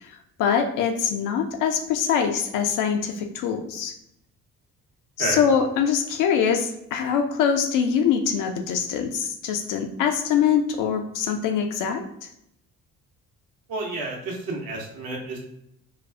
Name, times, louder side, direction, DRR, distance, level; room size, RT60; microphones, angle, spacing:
voice 1, 0.0-3.9 5.2-12.3, left 7 dB, 50° left, 5 dB, 0.5 m, -24 dB
voice 2, 13.7-15.4, right 2 dB, 55° right, 0 dB, 0.9 m, -30 dB
4.1 x 2.3 x 2.3 m, 0.78 s
figure-of-eight pair, 45°, 42 cm